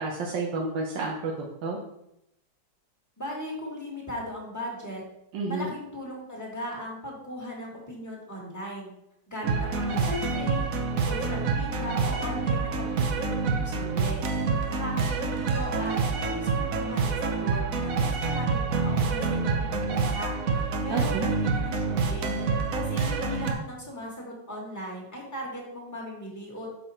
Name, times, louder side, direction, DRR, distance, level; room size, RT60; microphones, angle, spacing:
voice 1, 0.0-1.3 1.6-1.8 5.3-5.7 20.9-21.3, right 3 dB, 85° right, -1 dB, 1.5 m, -30 dB
voice 2, 3.2-5.0 5.5-8.9 9.3-10.7 11.0-12.9 13.1-14.3 14.7-22.4 22.7-26.7, left 1 dB, 10° left, -3 dB, 2.0 m, -38 dB
sound 1, 9.4-23.5, right 4 dB, 60° right, 1.1 m, -27 dB
6.8 x 5.4 x 4.3 m, 0.83 s
omnidirectional pair, 1.9 m